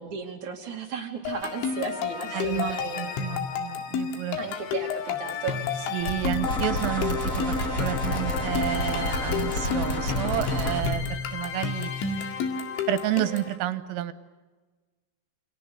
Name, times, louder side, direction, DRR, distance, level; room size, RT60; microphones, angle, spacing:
voice 1, 0.0-3.3 4.4-5.6, right 5 dB, 45° right, 2 dB, 3.1 m, -35 dB
sound 1, 1.3-13.6, left 6 dB, 70° left, 4.2 m, -31 dB
voice 2, 2.3-4.4 5.9-11.9 12.2-12.3 12.9-14.1, right 13 dB, 80° right, 13 dB, 3.7 m, -30 dB
sound 2, 6.0-11.0, left 1 dB, 25° left, 6.4 m, -30 dB
sound 3, 6.4-10.8, left 3 dB, 85° left, 0.7 m, -32 dB
28.5 x 26.0 x 7.1 m, 1.3 s
omnidirectional pair, 5.8 m